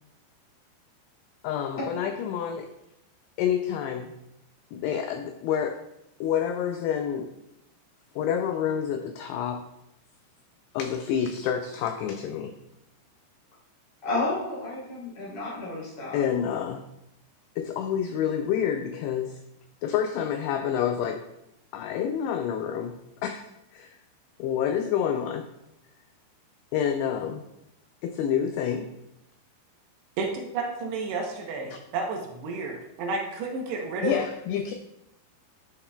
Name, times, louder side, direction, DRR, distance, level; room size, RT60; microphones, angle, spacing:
voice 1, 1.4-2.7 3.4-4.1 4.7-5.8 6.2-7.3 8.2-9.7 10.7-12.6 16.1-16.8 17.6-19.4 19.8-21.3 21.7-24.0 24.4-25.5 26.7-27.4 28.0-28.9 34.0-34.7, left 8 dB, 90° left, 6 dB, 2.3 m, -28 dB
voice 2, 14.0-16.2, left 2 dB, 40° left, -7 dB, 3.8 m, -31 dB
voice 3, 30.2-34.3, right 3 dB, 75° right, 1 dB, 2.8 m, -31 dB
11.0 x 5.8 x 2.3 m, 0.84 s
omnidirectional pair, 5.2 m